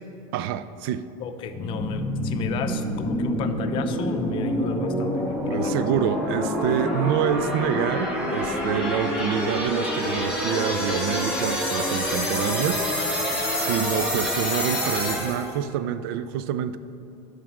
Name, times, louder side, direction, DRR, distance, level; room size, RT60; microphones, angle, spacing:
voice 1, 0.3-1.1 5.5-13.1 13.5-16.8, right 10 dB, 75° right, 0.4 m, -27 dB
voice 2, 1.2-5.8, left 6 dB, 45° left, 0.6 m, -33 dB
sound 1, 1.5-15.5, equal, 10° right, 1.7 m, -27 dB
9.3 x 5.0 x 6.4 m
cardioid pair, 150°, 12 cm